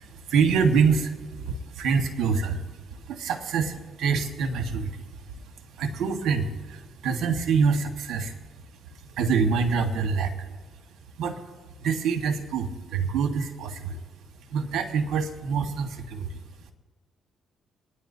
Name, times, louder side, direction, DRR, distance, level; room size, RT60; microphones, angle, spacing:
voice 1, 0.0-8.4 8.9-10.6 11.2-11.4 11.8-14.0 14.5-16.4, right 5 dB, 75° right, 6 dB, 1.4 m, -26 dB
27.0 x 10.0 x 2.7 m, 1.4 s
cardioid pair, 75°, 0 cm